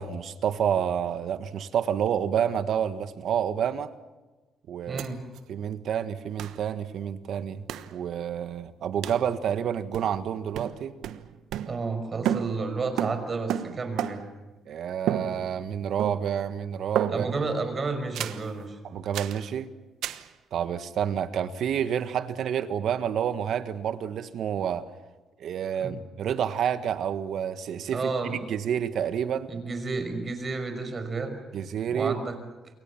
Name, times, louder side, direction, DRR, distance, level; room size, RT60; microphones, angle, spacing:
voice 1, 0.0-3.9 4.7-5.0 5.5-7.7 7.9-10.9 14.6-17.3 18.8-19.7 20.5-24.8 25.4-29.5 31.5-32.2, right 8 dB, 70° right, 11 dB, 1.6 m, -29 dB
voice 2, 4.9-5.2 11.7-14.2 17.1-18.8 25.8-25.9 27.9-28.4 29.5-31.4 31.9-32.4, right 4 dB, 40° right, 8 dB, 5.7 m, -31 dB
sound 1, 5.0-5.1 5.4-5.5 6.4-6.6 7.7-7.9 9.0-9.3 9.9-10.3 10.5-12.0 12.2-14.4 15.1-15.7 16.0-16.5 17.0-17.5 18.1-18.5 19.1-19.4 20.0-20.3, right 10 dB, 85° right, 1.2 m, -32 dB
28.5 x 23.5 x 7.3 m, 1.2 s
cardioid pair, 90°, 0 cm